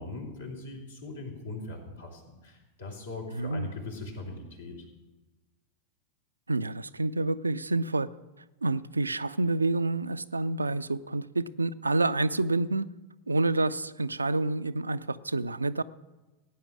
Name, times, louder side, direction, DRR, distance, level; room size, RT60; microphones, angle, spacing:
voice 1, 0.0-4.8, left 2 dB, 70° left, 0 dB, 3.6 m, -40 dB
voice 2, 3.3-3.7 6.5-8.1 8.6-12.9 13.3-15.8, right 2 dB, 80° right, 14 dB, 0.4 m, -28 dB
17.0 x 9.5 x 6.2 m, 1.1 s
figure-of-eight pair, 90°, 0 cm